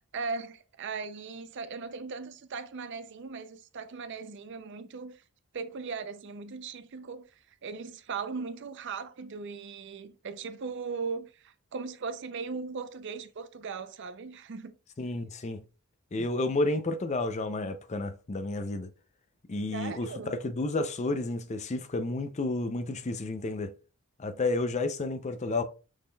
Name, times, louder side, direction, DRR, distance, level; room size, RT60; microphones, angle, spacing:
voice 1, 0.1-5.2 5.5-7.2 7.6-14.7 19.7-20.4, right 4 dB, 55° right, 0.5 m, -38 dB
voice 2, 15.0-15.6 16.1-18.9 19.5-23.7 24.2-25.6, left 2 dB, 30° left, 0.4 m, -31 dB
6.2 x 3.7 x 2.3 m
head